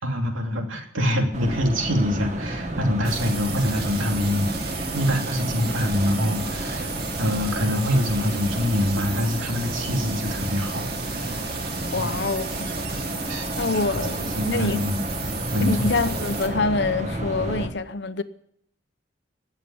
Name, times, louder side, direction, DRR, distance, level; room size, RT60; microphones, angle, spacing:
voice 1, 0.0-6.9 7.2-10.9 12.0-12.2 12.9-13.5 13.9-14.1 14.4-15.0 15.5-15.9, left 1 dB, 85° right, 3.0 m, -25 dB
sound 1, 1.3-17.7, right 1 dB, 35° right, 1.8 m, -31 dB
sound 2, 3.0-16.5, right 5 dB, 50° right, 2.1 m, -35 dB
voice 2, 11.9-12.7 13.6-14.8 15.6-18.2, left 3 dB, 60° left, 0.9 m, -25 dB
19.0 x 7.8 x 8.7 m
head